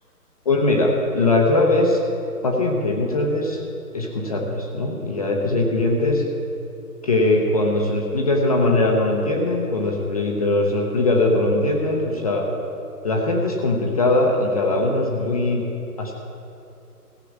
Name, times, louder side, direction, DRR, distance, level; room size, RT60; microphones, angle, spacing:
voice 1, 0.4-2.0 2.4-3.6 3.9-6.2 7.0-12.5 13.0-15.6 16.0-16.1, left 2 dB, 25° left, 0 dB, 0.8 m, -20 dB
15.5 x 6.8 x 7.3 m, 2.8 s
figure-of-eight pair, 145°, 47 cm